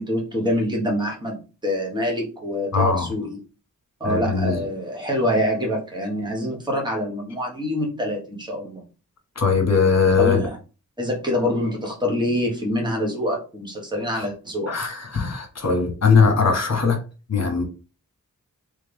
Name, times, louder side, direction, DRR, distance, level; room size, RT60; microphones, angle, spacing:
voice 1, 0.0-3.4 4.0-8.8 10.2-10.6 11.0-14.7, equal, 15° right, -1 dB, 1.4 m, -25 dB
voice 2, 2.7-3.1 4.0-4.6 9.4-10.4 14.7-17.0 17.3-17.6, left 5 dB, 55° left, 4 dB, 1.2 m, -20 dB
3.3 x 3.3 x 3.4 m, 0.33 s
wide cardioid pair, 100°, 32 cm